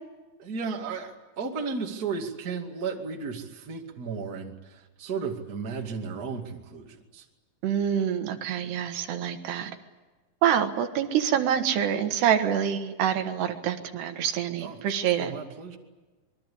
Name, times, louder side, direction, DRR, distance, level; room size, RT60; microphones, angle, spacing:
voice 1, 0.4-7.3 14.6-14.8 15.2-15.8, right 5 dB, 30° right, 2 dB, 2.1 m, -34 dB
voice 2, 7.6-9.7 10.4-15.3, right 9 dB, 75° right, 7 dB, 3.4 m, -26 dB
25.5 x 23.0 x 8.5 m, 1.2 s
omnidirectional pair, 5.0 m